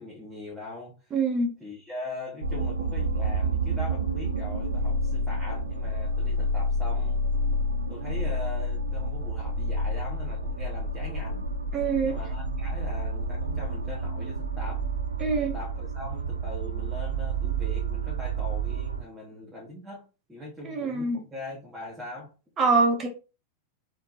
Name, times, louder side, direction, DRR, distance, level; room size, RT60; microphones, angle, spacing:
voice 1, 0.0-1.2 1.6-7.2 7.9-11.5 12.0-14.9 15.4-22.3, left 2 dB, 10° right, 1.7 m, -41 dB
voice 2, 1.1-1.5 11.7-12.1 15.2-15.5 20.6-21.2 22.6-23.1, right 4 dB, 25° right, 1.4 m, -24 dB
sound 1, 2.4-19.0, right 1 dB, 75° right, 0.4 m, -29 dB
4.3 x 3.7 x 2.9 m
figure-of-eight pair, 90°, 0 cm